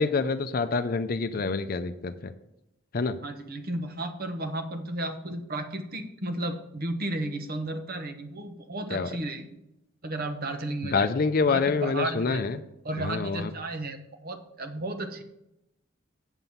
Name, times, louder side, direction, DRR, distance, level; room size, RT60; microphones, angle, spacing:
voice 1, 0.0-2.3 2.9-3.2 8.9-9.1 10.8-12.6 13.0-13.5, left 4 dB, 45° left, 10 dB, 0.5 m, -26 dB
voice 2, 3.2-9.4 10.0-11.1 11.5-12.4 12.8-15.2, right 1 dB, 50° right, 8 dB, 1.0 m, -33 dB
8.0 x 7.6 x 5.5 m, 0.87 s
head